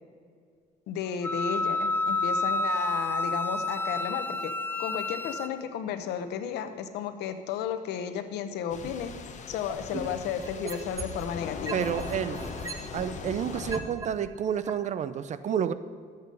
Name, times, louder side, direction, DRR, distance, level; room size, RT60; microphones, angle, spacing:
voice 1, 0.9-4.5 4.8-9.2 9.5-11.8, left 8 dB, 80° left, 9 dB, 0.9 m, -33 dB
Wind instrument woodwind instrument, 1.2-5.5, left 2 dB, 10° left, 0.4 m, -29 dB
sound 1, 8.7-13.8, left 6 dB, 45° left, 0.9 m, -40 dB
sound 2, 9.7-11.3 11.7-14.1 14.7-14.8, right 3 dB, 20° right, 1.0 m, -37 dB
voice 2, 11.7-12.4 12.9-15.7, right 8 dB, 45° right, 14 dB, 0.5 m, -30 dB
12.0 x 8.0 x 5.3 m, 2.1 s
cardioid pair, 110°, 17 cm